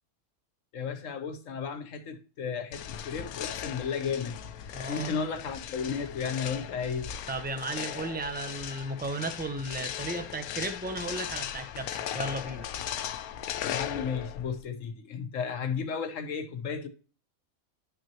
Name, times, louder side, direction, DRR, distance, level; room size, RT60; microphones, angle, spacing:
voice 1, 0.7-4.3 4.9-7.1 13.6-16.9, left 6 dB, 65° left, 1.3 m, -33 dB
sound 1, 2.7-14.6, left 10 dB, 85° left, 1.1 m, -38 dB
voice 2, 4.7-5.1 7.3-12.7, right 2 dB, 10° right, 0.6 m, -35 dB
10.5 x 6.1 x 2.9 m
omnidirectional pair, 1.5 m